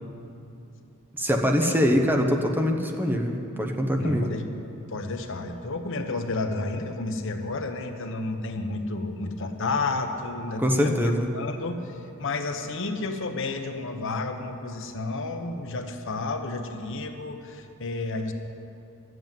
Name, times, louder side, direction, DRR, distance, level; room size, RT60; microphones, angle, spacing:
voice 1, 1.1-4.3 10.6-11.3, equal, 10° right, 3 dB, 0.9 m, -23 dB
voice 2, 4.0-4.5 4.9-18.3, left 3 dB, 65° left, 6 dB, 0.9 m, -31 dB
12.5 x 7.8 x 9.1 m, 2.7 s
head